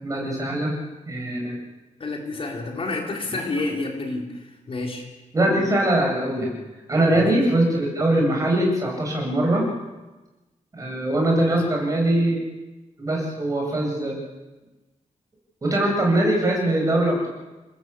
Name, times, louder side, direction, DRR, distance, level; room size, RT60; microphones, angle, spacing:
voice 1, 0.0-0.7 1.0-1.5 5.3-6.5 6.9-9.7 10.7-12.4 13.0-14.2 15.6-17.3, right 1 dB, 25° right, -1 dB, 7.7 m, -22 dB
voice 2, 2.0-5.1 7.1-7.3 11.5-11.6, left 2 dB, 45° left, 1 dB, 4.2 m, -29 dB
30.0 x 19.0 x 8.5 m, 1.1 s
wide cardioid pair, 165°, 13 cm